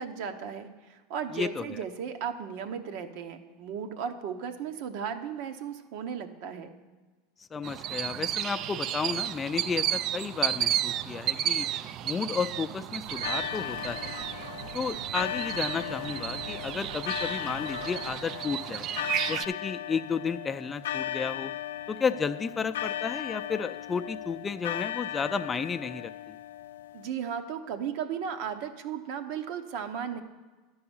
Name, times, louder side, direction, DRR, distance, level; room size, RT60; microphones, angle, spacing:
voice 1, 0.0-6.7 26.9-30.2, right 7 dB, 65° right, 8 dB, 0.9 m, -35 dB
voice 2, 1.3-1.6 7.5-11.7 12.0-14.1 14.7-18.9 19.3-21.5 21.9-26.4, left 5 dB, 20° left, 10 dB, 0.5 m, -32 dB
sound 1, 7.6-19.4, right 11 dB, 45° right, 0.4 m, -33 dB
sound 2, 13.0-18.2, right 5 dB, 85° right, 0.7 m, -46 dB
sound 3, 13.2-27.1, left 12 dB, 90° left, 0.3 m, -37 dB
11.0 x 4.8 x 7.2 m, 1.3 s
supercardioid pair, 110°, 0 cm